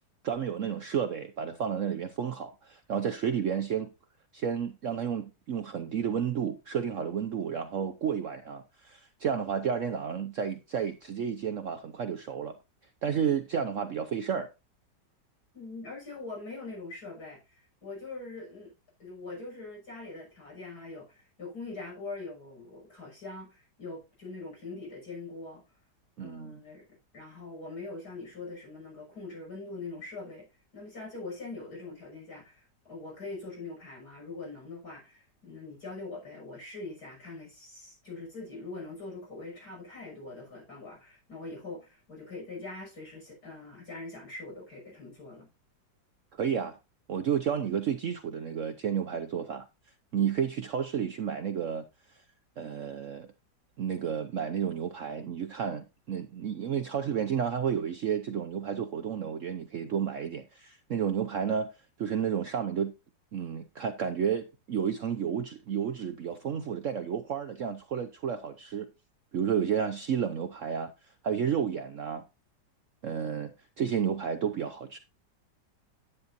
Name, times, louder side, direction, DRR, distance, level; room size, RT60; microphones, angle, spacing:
voice 1, 0.2-3.9 4.3-12.6 13.0-14.5 26.2-26.6 46.4-46.8 47.1-49.7 50.1-51.9 52.6-53.3 53.8-61.7 62.0-62.9 63.3-68.9 69.3-70.9 71.2-72.2 73.0-75.0, right 8 dB, 60° right, 0.9 m, -31 dB
voice 2, 15.5-18.7 19.0-25.6 26.2-30.5 30.7-45.5, left 3 dB, 60° left, 6.7 m, -43 dB
9.9 x 9.6 x 2.6 m
omnidirectional pair, 1.9 m